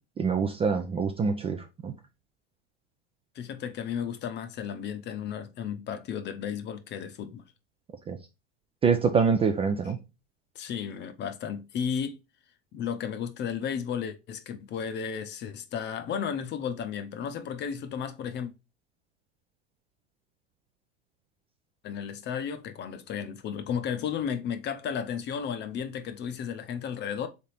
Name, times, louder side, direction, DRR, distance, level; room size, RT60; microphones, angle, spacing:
voice 1, 0.2-1.9 8.1-8.2 8.8-10.0, right 5 dB, 20° right, 0.4 m, -25 dB
voice 2, 3.3-7.4 10.5-12.2 12.7-18.5 21.8-27.3, left 7 dB, 35° left, 0.7 m, -33 dB
3.6 x 3.5 x 4.1 m
hypercardioid pair, 110°, 32 cm